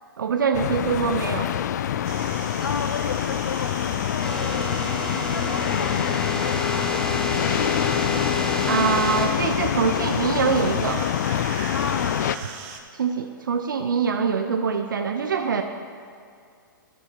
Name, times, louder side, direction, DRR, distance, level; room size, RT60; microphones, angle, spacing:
voice 1, 0.2-1.5 8.7-11.0 13.0-15.6, right 6 dB, 65° right, 6 dB, 0.6 m, -24 dB
sound 1, 0.5-12.4, left 10 dB, 50° left, 0.4 m, -26 dB
sound 2, 2.0-12.8, right 6 dB, 40° right, 1.0 m, -40 dB
voice 2, 2.6-4.7 5.1-7.8 11.7-12.3, left 5 dB, 75° left, 9 dB, 0.7 m, -35 dB
sound 3, 4.2-9.3, left 3 dB, 5° left, 0.9 m, -29 dB
10.5 x 7.0 x 5.7 m, 2.3 s
figure-of-eight pair, 115°, 12 cm